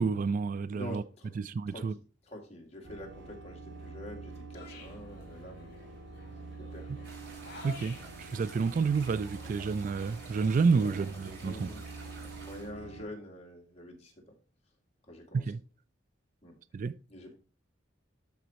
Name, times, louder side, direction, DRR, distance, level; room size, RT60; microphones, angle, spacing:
voice 1, 0.0-1.0 1.4-2.0 7.6-11.7 15.3-15.6 16.7-17.0, right 5 dB, 45° right, 0.3 m, -29 dB
voice 2, 0.7-1.3 1.7-1.9 2.3-5.9 6.7-7.1 10.8-11.0 11.4-14.3 15.1-15.4 16.4-16.5 17.1-17.4, left 1 dB, 35° left, 2.3 m, -46 dB
sound 1, 2.8-13.0, right 3 dB, 90° right, 2.4 m, -46 dB
sound 2, 4.5-9.8, left 4 dB, 60° left, 3.3 m, -53 dB
sound 3, 7.0-12.7, right 3 dB, 65° right, 4.3 m, -50 dB
13.0 x 5.2 x 3.0 m
head